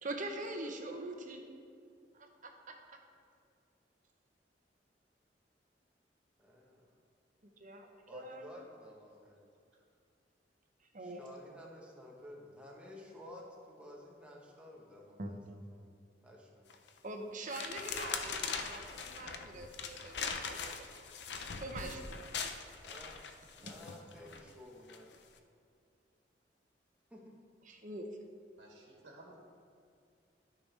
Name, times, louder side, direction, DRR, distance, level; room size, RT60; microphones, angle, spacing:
voice 1, 0.0-1.4 2.1-3.0 7.6-8.5 10.9-11.2 15.2-15.3 17.0-20.9 21.6-22.0 22.3-22.5 23.6-23.7 27.7-28.1, right 2 dB, 45° right, 4 dB, 0.9 m, -44 dB
voice 2, 6.4-6.9 8.1-9.4 11.0-15.4 15.7-15.9 16.2-16.7 22.8-23.2 23.6-25.1 27.1-27.4, left 1 dB, 5° right, -2 dB, 1.2 m, -53 dB
sound 1, 16.7-17.0 17.5-24.4 24.9-25.2, left 5 dB, 65° left, 0.6 m, -41 dB
voice 3, 28.6-29.4, right 2 dB, 70° right, -3 dB, 1.5 m, -55 dB
12.5 x 6.0 x 3.4 m, 2.4 s
head